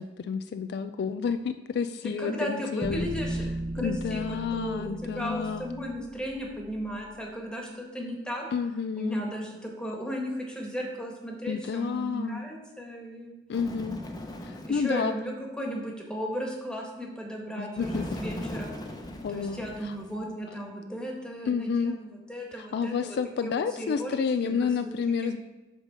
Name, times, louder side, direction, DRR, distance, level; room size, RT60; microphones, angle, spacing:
voice 1, 0.0-3.1 3.8-5.7 8.5-9.2 11.5-12.4 13.5-14.0 14.4-15.1 17.6-18.1 19.2-19.9 21.5-22.0 22.5-25.4, left 6 dB, 60° left, 10 dB, 0.3 m, -30 dB
voice 2, 2.0-3.4 3.7-8.4 9.0-13.4 14.6-18.7 19.3-23.5 23.8-24.1 24.4-25.0 25.2-25.3, equal, 5° left, -1 dB, 1.4 m, -35 dB
sound 1, 2.8-7.0, right 1 dB, 20° right, 0.9 m, -36 dB
Bird, 13.5-14.9 17.8-20.3, left 1 dB, 20° left, 0.8 m, -38 dB
8.2 x 3.7 x 6.4 m, 1.2 s
head